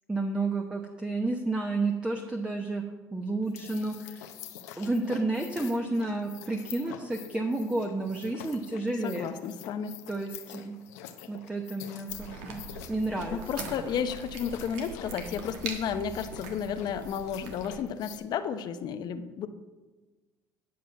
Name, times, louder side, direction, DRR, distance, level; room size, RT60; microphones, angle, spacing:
voice 1, 0.1-2.8 3.1-4.2 4.8-9.3 10.1-10.8 11.3-13.4, right 2 dB, 10° right, 3 dB, 0.9 m, -31 dB
sound 1, 3.5-18.2, left 10 dB, 90° left, 0.8 m, -46 dB
voice 2, 9.0-9.9 13.3-19.5, left 7 dB, 60° left, 10 dB, 0.7 m, -32 dB
sound 2, 12.1-17.7, right 4 dB, 85° right, 1.5 m, -42 dB
10.5 x 6.0 x 5.8 m, 1.2 s
supercardioid pair, 80°, 8 cm